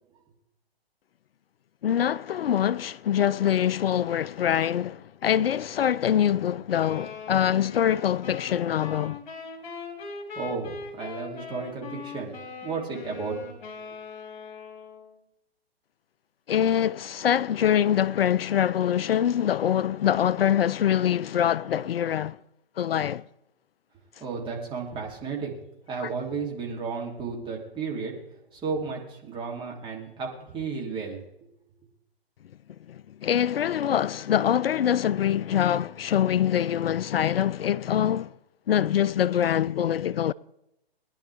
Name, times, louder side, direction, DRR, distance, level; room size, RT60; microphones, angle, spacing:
voice 1, 1.8-9.2 16.5-22.4 22.8-23.2 26.0-26.1 33.2-38.3 38.7-40.3, left 10 dB, 70° left, 0.4 m, -24 dB
sound 1, 6.8-15.2, left 5 dB, 50° left, 3.7 m, -41 dB
voice 2, 10.3-12.3 12.6-13.4 24.2-25.5 25.9-28.1 28.5-31.2, right 5 dB, 15° right, 3.0 m, -33 dB
21.0 x 11.0 x 3.5 m
hypercardioid pair, 135°, 31 cm